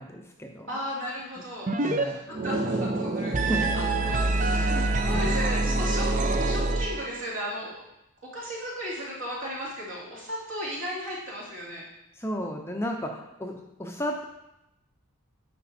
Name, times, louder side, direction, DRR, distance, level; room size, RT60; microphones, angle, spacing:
voice 1, 0.0-0.7 1.8-2.2 3.4-3.7 4.5-5.4 12.1-14.2, equal, 10° left, 1 dB, 0.6 m, -34 dB
voice 2, 0.7-7.8 8.3-11.8, equal, 60° right, -5 dB, 2.8 m, -36 dB
sound 1, 1.7-2.0 2.3-7.3, right 2 dB, 35° right, 0.5 m, -26 dB
9.6 x 5.2 x 4.3 m, 0.88 s
head